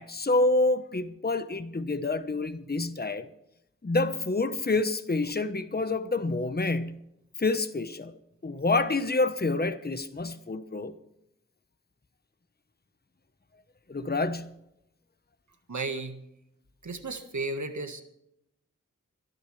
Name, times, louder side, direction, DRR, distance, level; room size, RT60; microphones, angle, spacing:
voice 1, 0.0-3.3 3.8-7.0 7.4-8.1 8.4-10.9 13.9-14.6, left 2 dB, 30° left, 10 dB, 1.0 m, -28 dB
voice 2, 15.7-16.2 16.8-18.0, right 3 dB, 75° right, 7 dB, 1.6 m, -34 dB
25.0 x 11.0 x 3.3 m, 0.81 s
wide cardioid pair, 45°, 30 cm